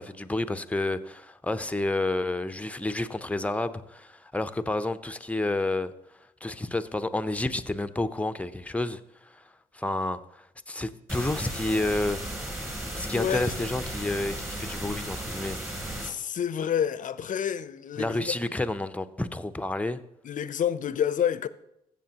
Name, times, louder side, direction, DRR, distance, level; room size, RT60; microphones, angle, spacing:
voice 1, 0.0-5.9 6.4-9.4 9.7-12.5 12.9-15.6 15.9-16.0 18.0-20.0, left 2 dB, 10° left, 0.6 m, -30 dB
sound 1, 11.1-16.1, right 1 dB, 15° right, 2.9 m, -35 dB
voice 2, 13.0-13.5 16.0-18.6 20.2-21.5, left 9 dB, 50° left, 0.6 m, -29 dB
15.5 x 6.8 x 2.9 m
supercardioid pair, 55°, 17 cm